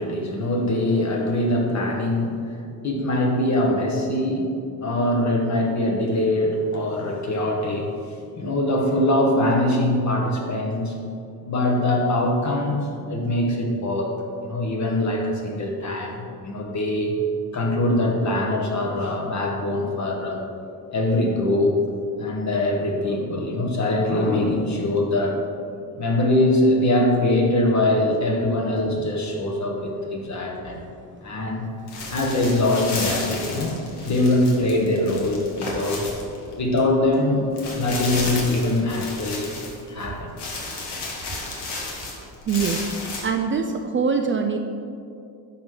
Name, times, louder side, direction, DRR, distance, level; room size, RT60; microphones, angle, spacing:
voice 1, 0.0-4.5 4.8-7.9 8.3-11.0 11.4-12.8 13.1-14.1 14.4-17.1 17.5-20.4 20.9-21.8 22.2-25.4 25.9-30.8 31.2-31.6 32.1-36.1 36.6-39.6 39.9-40.5, left 1 dB, 40° left, 1 dB, 1.6 m, -23 dB
sound 1, 31.9-36.8 37.1-37.2 37.6-40.1 40.4-43.2, left 3 dB, 70° left, 2.1 m, -32 dB
voice 2, 42.5-42.8 43.2-44.6, right 5 dB, 30° right, 5 dB, 0.4 m, -23 dB
10.5 x 6.5 x 4.0 m, 2.5 s
cardioid pair, 120°, 42 cm